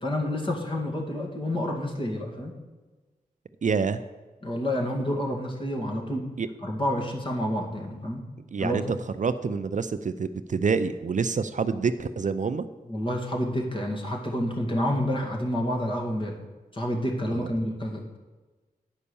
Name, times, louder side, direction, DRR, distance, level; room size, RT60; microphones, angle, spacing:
voice 1, 0.0-2.5 4.4-6.2 6.6-8.2 8.6-8.8 12.9-16.4 16.7-18.2, left 1 dB, 35° left, 0 dB, 2.1 m, -29 dB
voice 2, 3.6-4.0 6.4-6.5 8.5-12.7 17.3-17.5, right 5 dB, 55° right, 11 dB, 0.5 m, -27 dB
9.8 x 5.4 x 7.0 m, 1.3 s
cardioid pair, 65°, 16 cm